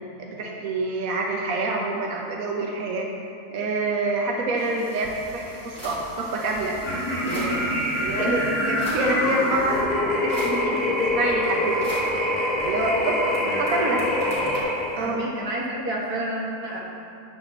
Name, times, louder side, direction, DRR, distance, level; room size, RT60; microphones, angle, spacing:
voice 1, 0.2-3.1 3.5-6.8 7.2-7.6 7.9-11.9 12.6-14.0 15.0-15.2, right 2 dB, 70° right, -1 dB, 1.3 m, -27 dB
sound 1, 4.6-9.8 10.3-11.1 11.8-13.4 13.7-14.6, right 1 dB, 10° right, 2.1 m, -41 dB
sound 2, 6.8-15.1, left 1 dB, 30° left, 1.6 m, -25 dB
voice 2, 13.3-14.1 15.0-16.8, right 1 dB, 90° right, -4 dB, 2.0 m, -30 dB
9.9 x 4.2 x 7.0 m, 2.6 s
omnidirectional pair, 1.6 m